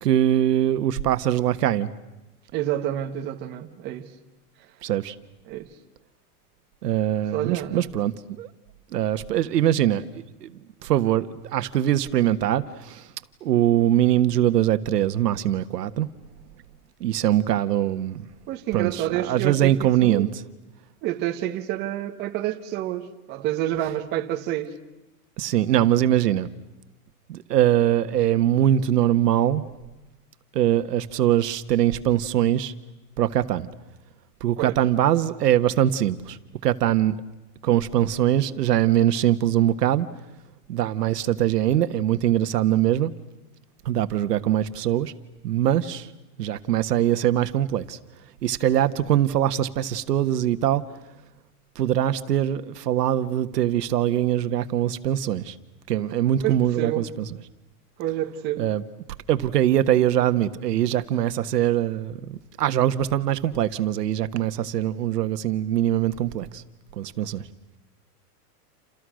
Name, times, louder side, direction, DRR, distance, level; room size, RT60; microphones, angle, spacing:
voice 1, 0.0-1.9 4.8-5.1 6.8-8.5 8.9-10.0 10.4-10.5 10.8-13.0 13.4-16.1 17.0-18.2 18.7-20.3 25.4-26.5 27.3-29.6 30.5-32.7 33.2-33.7 34.4-36.4 36.6-37.2 37.6-40.1 40.7-43.1 43.8-45.1 45.4-46.1 46.4-48.0 48.4-50.8 51.7-55.5 55.9-57.2 58.6-58.8 59.3-66.6 67.0-67.4, right 12 dB, 85° right, 1.6 m, -22 dB
voice 2, 2.5-4.1 5.5-5.7 7.3-7.8 18.5-20.3 21.0-24.7 34.6-34.8 56.4-57.0 58.0-58.7, right 12 dB, 20° right, 1.2 m, -28 dB
29.0 x 27.5 x 6.4 m
supercardioid pair, 170°, 47 cm